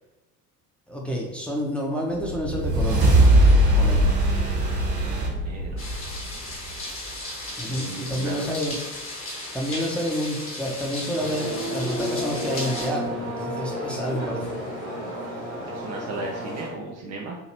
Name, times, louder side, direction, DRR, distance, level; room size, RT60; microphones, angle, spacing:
voice 1, 0.9-3.3 3.7-4.2 7.6-8.8 9.5-14.6, equal, ahead, -2 dB, 0.8 m, -29 dB
sound 1, 2.2-6.8, right 1 dB, 70° right, 1.3 m, -20 dB
voice 2, 5.1-6.0 7.7-8.5 15.7-17.4, right 2 dB, 35° right, 0 dB, 0.5 m, -36 dB
sound 2, 5.8-12.9, left 1 dB, 25° left, 1.1 m, -35 dB
sound 3, 11.1-16.7, equal, 85° left, 1.2 m, -32 dB
4.5 x 2.8 x 2.9 m, 1.1 s
figure-of-eight pair, 60°, 48 cm